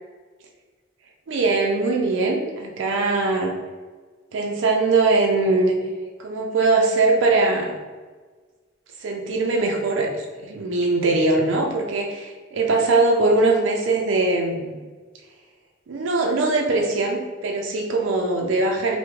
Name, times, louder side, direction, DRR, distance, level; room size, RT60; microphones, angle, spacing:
voice 1, 1.3-3.5 4.3-5.9 6.2-7.8 9.0-14.8 15.9-19.0, right 3 dB, 75° right, 0 dB, 0.4 m, -21 dB
3.4 x 2.1 x 3.1 m, 1.4 s
head